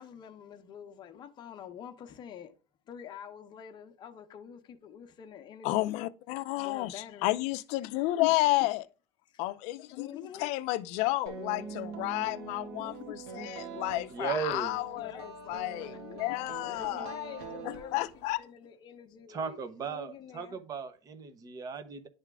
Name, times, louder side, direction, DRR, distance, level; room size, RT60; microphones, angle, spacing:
voice 1, 0.0-2.5 2.9-6.0 6.6-7.3 8.3-8.6 9.3-9.4 9.9-10.5 12.7-13.0 14.8-15.3 15.8-16.2 16.7-20.6, left 9 dB, 35° left, 0.9 m, -47 dB
voice 2, 5.6-6.9 7.2-8.8 9.4-10.1 10.4-17.1 17.7-18.4, left 18 dB, 60° left, 0.5 m, -31 dB
sound 1, 11.3-18.4, right 4 dB, 75° right, 1.8 m, -44 dB
voice 3, 14.1-14.8 19.3-22.1, right 6 dB, 25° right, 0.9 m, -36 dB
10.5 x 3.6 x 3.5 m
cardioid pair, 155°, 13 cm